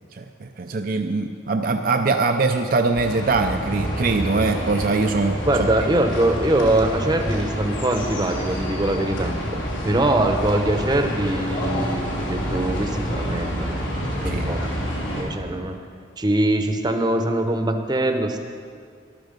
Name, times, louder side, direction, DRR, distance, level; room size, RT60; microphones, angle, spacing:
voice 1, 0.1-5.7 14.3-14.5, right 3 dB, 45° right, 5 dB, 0.5 m, -22 dB
sound 1, 3.0-15.2, equal, 75° left, 3.1 m, -28 dB
voice 2, 5.5-9.3 9.8-13.8 14.2-15.8 16.2-18.4, right 1 dB, 20° right, 6 dB, 0.8 m, -22 dB
13.5 x 12.0 x 5.2 m, 2.2 s
head